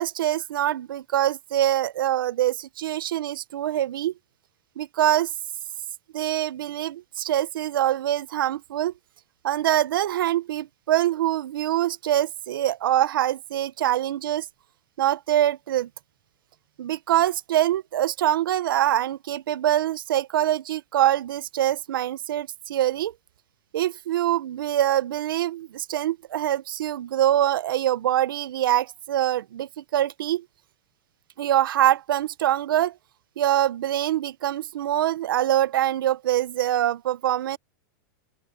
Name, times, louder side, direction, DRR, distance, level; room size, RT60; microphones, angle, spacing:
voice 1, 0.0-4.1 4.8-5.3 6.1-8.9 9.4-14.5 15.0-15.9 16.8-23.1 23.7-30.4 31.4-32.9 33.4-37.6, right 12 dB, 90° right, 0.6 m, -24 dB
open air
supercardioid pair, 160°, 11 cm